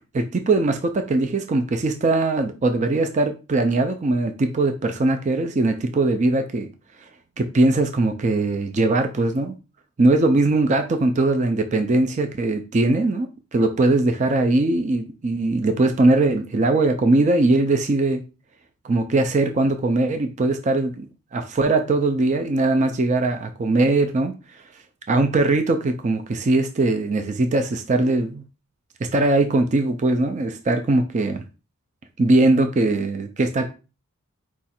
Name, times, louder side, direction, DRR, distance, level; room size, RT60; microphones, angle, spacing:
voice 1, 0.1-6.7 7.4-9.5 10.0-18.2 18.8-24.3 25.1-28.4 29.1-31.4 32.2-33.7, right 2 dB, 35° right, 6 dB, 0.4 m, -20 dB
4.6 x 2.4 x 4.2 m, 0.32 s
head